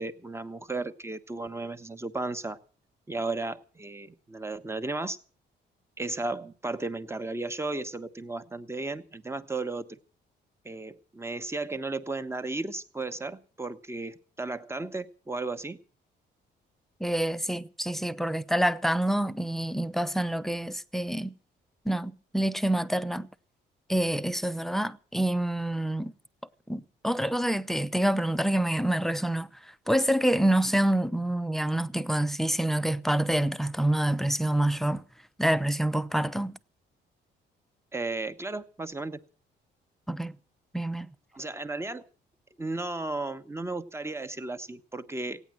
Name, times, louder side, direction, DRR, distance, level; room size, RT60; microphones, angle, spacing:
voice 1, 0.0-2.6 3.1-5.2 6.0-10.0 10.6-15.8 37.9-39.2 41.3-42.1 42.6-45.4, right 2 dB, 15° right, 1.2 m, -34 dB
voice 2, 17.0-21.3 21.9-23.3 23.9-26.1 26.7-29.5 29.9-35.0 35.4-36.6 40.1-40.3 40.7-41.1, right 1 dB, ahead, 0.7 m, -27 dB
16.5 x 9.6 x 7.6 m
cardioid pair, 100°, 19 cm